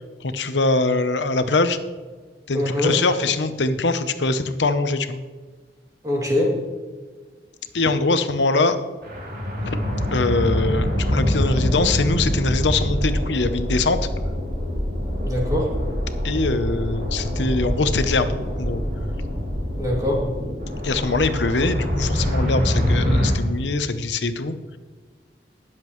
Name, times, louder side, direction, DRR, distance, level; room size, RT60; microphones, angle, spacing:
voice 1, 0.2-1.8 2.5-5.2 7.7-8.8 9.7-9.8 10.1-14.0 16.2-18.8 20.8-24.5, left 3 dB, 80° left, 10 dB, 0.8 m, -22 dB
voice 2, 2.5-3.0 6.0-6.5 15.2-15.7 19.8-20.2, left 1 dB, 20° right, -3 dB, 2.8 m, -22 dB
sound 1, 9.0-23.3, equal, 60° right, 3.2 m, -24 dB
20.0 x 7.5 x 3.2 m, 1.4 s
head